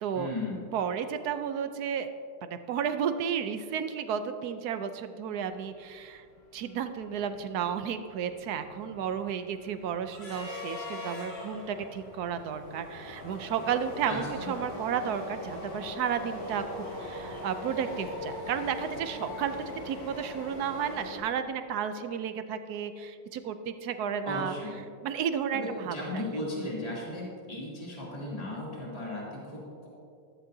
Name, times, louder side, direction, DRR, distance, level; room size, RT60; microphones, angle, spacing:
voice 1, 0.1-0.6 14.1-14.5 24.2-24.7 25.5-29.9, left 1 dB, 20° left, -6 dB, 2.9 m, -36 dB
voice 2, 0.7-2.1 2.4-6.2 6.5-24.5 25.0-26.2, right 8 dB, 70° right, 9 dB, 0.9 m, -33 dB
sound 1, 5.8-5.9 6.1-6.4 6.8-21.2, left 1 dB, 70° left, 4.2 m, -41 dB
14.5 x 13.5 x 2.7 m, 2.3 s
omnidirectional pair, 2.2 m